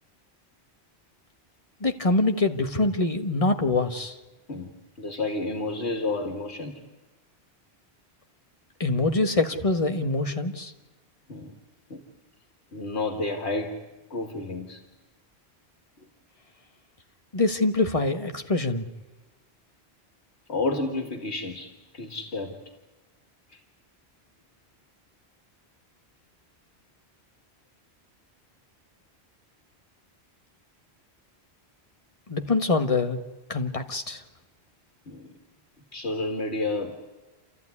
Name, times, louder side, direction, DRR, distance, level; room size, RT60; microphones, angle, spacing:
voice 1, 1.8-4.2 8.8-10.7 17.3-18.9 32.3-33.2 33.5-34.2, left 3 dB, 30° left, 6 dB, 1.5 m, -24 dB
voice 2, 4.5-6.8 11.3-11.5 11.9-12.0 12.7-13.8 14.1-14.8 16.0-16.1 20.5-22.6 23.5-23.6 35.1-35.3 35.9-37.0, left 2 dB, 80° left, 4 dB, 2.2 m, -31 dB
28.5 x 14.5 x 9.7 m, 1.2 s
omnidirectional pair, 1.1 m